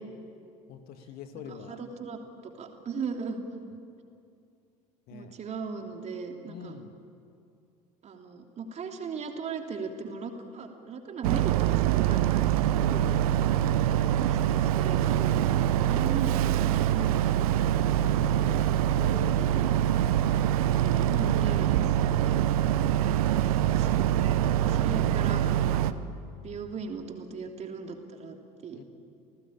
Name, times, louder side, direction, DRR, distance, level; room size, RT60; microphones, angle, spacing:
voice 1, 0.7-1.8 5.1-5.3 6.4-6.9 12.8-13.7 17.6-20.4 25.9-26.2 28.7-28.8, left 7 dB, 50° left, 8 dB, 2.0 m, -45 dB
voice 2, 1.5-2.2 2.4-3.4 5.1-6.8 8.0-13.1 14.1-17.5 19.4-19.7 20.8-22.4 23.2-23.9 24.7-25.4 25.7-26.0 26.4-28.4 28.6-28.8, right 5 dB, 35° right, 4 dB, 3.1 m, -38 dB
Boat Water vehicle, 11.2-25.9, right 11 dB, 60° right, 0.9 m, -24 dB
30.0 x 18.5 x 8.8 m, 2.5 s
figure-of-eight pair, 70°, 21 cm